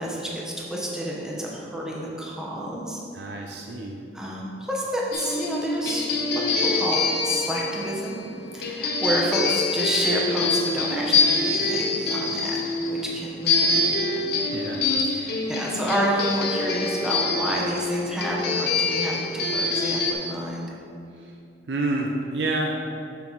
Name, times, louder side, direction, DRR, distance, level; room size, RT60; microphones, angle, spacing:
voice 1, 0.0-3.0 4.1-6.1 6.3-8.2 8.5-14.2 15.1-20.7, right 1 dB, 5° right, -4 dB, 0.9 m, -30 dB
voice 2, 3.1-4.0 14.5-14.8 21.2-21.3 21.7-22.7, right 2 dB, 70° right, 0 dB, 0.6 m, -28 dB
sound 1, 5.1-20.1, left 3 dB, 65° left, 0.8 m, -25 dB
7.2 x 5.6 x 3.9 m, 2.6 s
head